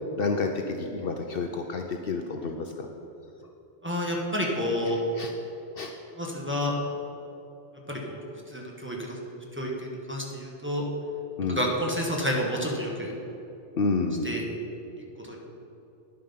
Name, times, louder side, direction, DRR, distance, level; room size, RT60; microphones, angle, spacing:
voice 1, 0.2-2.9 5.2-5.3 5.8-5.9 11.4-11.6 13.7-14.3, left 4 dB, 60° left, 3 dB, 0.8 m, -29 dB
voice 2, 3.8-5.0 6.2-6.7 7.9-8.2 8.5-9.2 9.6-9.7 10.1-10.8 11.5-13.1 14.2-14.4 15.3-15.4, equal, 10° right, -2 dB, 1.3 m, -29 dB
10.0 x 7.6 x 5.5 m, 3.0 s
omnidirectional pair, 1.2 m